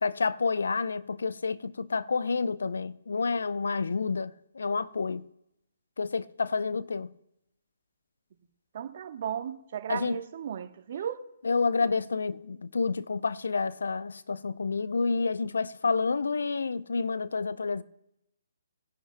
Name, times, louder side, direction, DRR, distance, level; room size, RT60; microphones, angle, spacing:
voice 1, 0.0-5.2 6.0-7.1 9.9-10.2 11.4-17.8, left 4 dB, 70° left, 0.6 m, -29 dB
voice 2, 8.7-11.2, right 9 dB, 50° right, 1.1 m, -35 dB
22.5 x 11.0 x 2.3 m
figure-of-eight pair, 135°, 0 cm